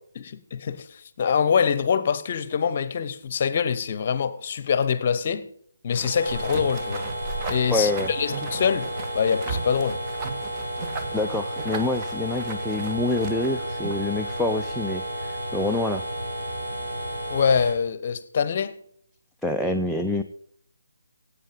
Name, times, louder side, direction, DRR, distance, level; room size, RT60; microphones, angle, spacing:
voice 1, 0.2-5.5 5.8-7.1 7.5-10.0 17.3-18.8, left 6 dB, 40° left, 0.9 m, -24 dB
sound 1, 5.9-14.1, right 4 dB, 20° right, 1.2 m, -37 dB
sound 2, 6.0-17.7, right 1 dB, 65° right, 6.4 m, -32 dB
voice 2, 7.7-8.1 11.1-16.0 19.4-20.2, left 2 dB, ahead, 0.5 m, -26 dB
17.5 x 8.4 x 5.1 m
figure-of-eight pair, 145°, 0 cm